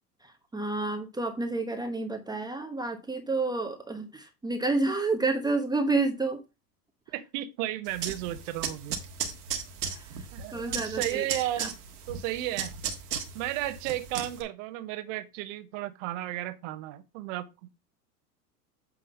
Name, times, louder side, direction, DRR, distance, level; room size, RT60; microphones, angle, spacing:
voice 1, 0.2-6.4 9.8-10.1 10.5-11.3 11.6-11.7, right 3 dB, 10° right, 1.1 m, -29 dB
voice 2, 7.1-9.0 10.3-11.8 12.1-12.7 13.3-17.7, right 14 dB, 50° right, 1.2 m, -34 dB
sound 1, 7.9-14.4, right 7 dB, 75° right, 1.8 m, -36 dB
8.7 x 3.7 x 5.6 m
hypercardioid pair, 95°, 47 cm